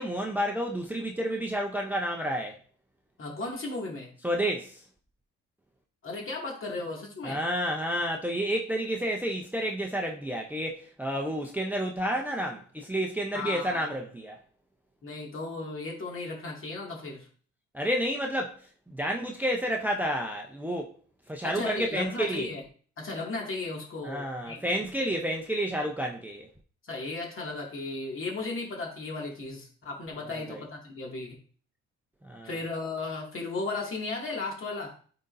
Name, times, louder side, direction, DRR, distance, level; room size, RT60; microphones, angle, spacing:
voice 1, 0.0-2.6 4.2-4.8 7.2-14.4 17.7-20.9 21.3-22.5 24.0-26.5 30.5-30.6 32.2-32.5, equal, 5° right, 0.7 m, -30 dB
voice 2, 3.2-4.1 6.0-7.4 13.3-13.9 15.0-17.3 21.4-22.6 23.0-24.6 26.9-31.4 32.4-34.9, left 3 dB, 45° left, 2.3 m, -35 dB
9.6 x 3.9 x 2.6 m
cardioid pair, 90°, 30 cm